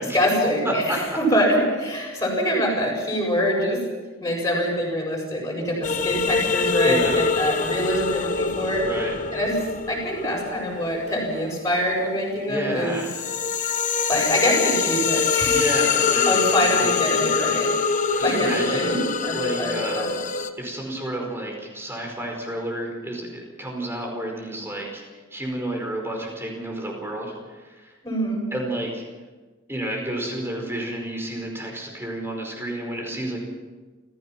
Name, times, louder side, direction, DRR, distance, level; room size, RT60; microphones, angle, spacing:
voice 1, 0.1-0.7 1.2-3.8 4.2-8.8 9.3-9.5 9.9-13.0 14.1-15.7 16.3-17.7 18.2-20.1 28.0-28.4, equal, 15° left, -2 dB, 7.7 m, -24 dB
voice 2, 0.6-1.0 2.1-2.2 6.8-7.2 8.8-9.2 12.5-13.2 15.4-17.1 18.2-19.0 19.3-20.1 20.6-25.0 25.3-27.9 28.5-29.0 29.7-33.4, right 1 dB, 10° right, 0 dB, 5.0 m, -30 dB
sound 1, 5.8-12.2 12.6-20.5, left 5 dB, 40° left, 1.2 m, -24 dB
29.0 x 15.5 x 6.0 m, 1.3 s
head